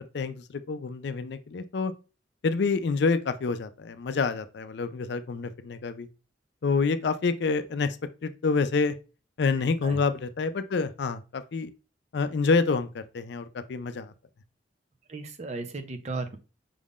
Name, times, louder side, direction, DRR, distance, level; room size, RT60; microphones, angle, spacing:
voice 1, 0.1-1.9 2.4-6.1 6.6-8.0 8.2-9.0 9.4-11.7 12.1-14.1, left 4 dB, 65° left, 0.4 m, -27 dB
voice 2, 15.1-16.4, right 3 dB, 35° right, 0.6 m, -35 dB
5.3 x 3.6 x 2.4 m
head